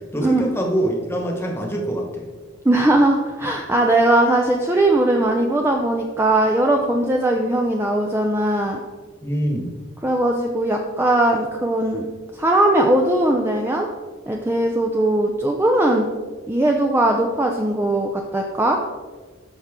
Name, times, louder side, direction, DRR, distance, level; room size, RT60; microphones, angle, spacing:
voice 1, 0.0-2.3 9.2-9.7, right 1 dB, 10° left, 1 dB, 1.2 m, -24 dB
voice 2, 2.6-8.8 10.0-12.1 12.3-13.9 14.3-16.1 16.5-18.8, right 1 dB, 10° right, 1 dB, 0.5 m, -19 dB
13.0 x 5.8 x 3.7 m, 1.5 s
head